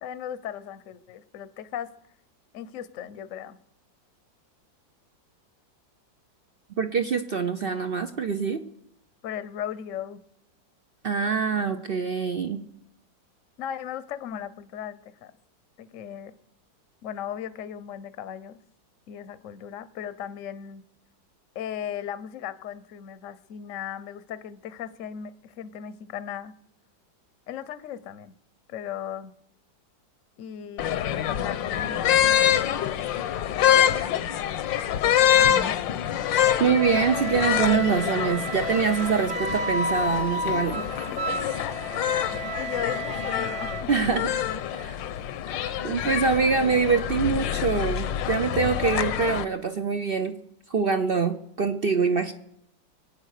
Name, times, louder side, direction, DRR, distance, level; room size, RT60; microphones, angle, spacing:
voice 1, 0.0-1.9 2.5-3.6 9.2-10.2 13.6-15.3 15.8-16.4 17.0-18.6 19.1-20.8 21.5-26.5 27.5-28.3 28.7-29.3 30.4-33.1 41.4-41.8 42.1-43.9 45.1-45.2, left 9 dB, 55° left, 14 dB, 1.0 m, -37 dB
voice 2, 6.8-8.6 11.0-12.6 36.6-40.8 43.9-44.3 44.7-45.0 45.5-50.4 50.7-52.3, right 5 dB, 65° right, 9 dB, 0.5 m, -25 dB
sound 1, 30.8-49.4, left 10 dB, 80° left, 1.4 m, -26 dB
Wind instrument woodwind instrument, 36.7-43.8, right 1 dB, 40° right, 1.4 m, -32 dB
23.0 x 9.1 x 6.6 m, 0.75 s
omnidirectional pair, 2.0 m